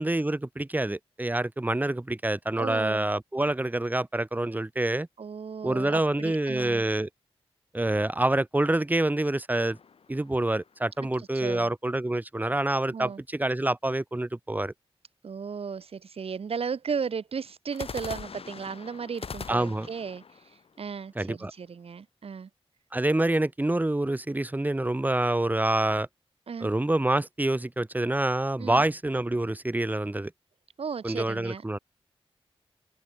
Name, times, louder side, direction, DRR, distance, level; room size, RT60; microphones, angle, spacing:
voice 1, 0.0-5.1 5.6-7.1 7.7-9.8 10.1-14.7 19.5-19.9 21.1-21.5 22.9-26.1 26.6-30.3 31.0-31.8, right 1 dB, 15° right, 3.3 m, -27 dB
voice 2, 2.6-3.0 5.2-6.8 11.0-11.1 11.3-11.7 12.9-13.2 15.2-20.2 20.8-22.5 26.5-26.7 28.6-28.8 30.8-31.8, right 6 dB, 70° right, 3.6 m, -35 dB
sound 1, 9.5-11.0 17.7-21.7, left 5 dB, 70° left, 4.8 m, -43 dB
wide cardioid pair, 80°, 10 cm